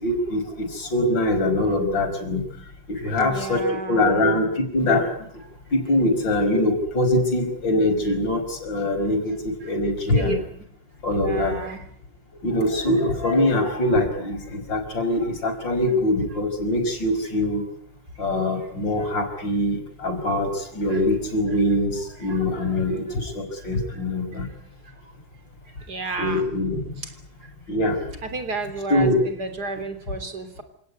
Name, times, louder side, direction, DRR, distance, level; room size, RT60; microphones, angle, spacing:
voice 1, 0.0-2.5 2.9-5.1 5.7-10.4 11.0-11.6 12.4-17.6 18.2-24.5 26.2-26.8 27.7-28.0 28.9-29.2, left 1 dB, 85° left, 6 dB, 5.8 m, -23 dB
voice 2, 3.0-4.3 9.6-9.7 10.1-10.4 11.2-11.8 20.9-21.0 23.6-23.7 24.8-25.0 25.8-26.4 27.4-27.5 28.2-30.6, right 3 dB, 60° right, 8 dB, 4.0 m, -32 dB
27.5 x 18.0 x 9.7 m, 0.67 s
omnidirectional pair, 2.0 m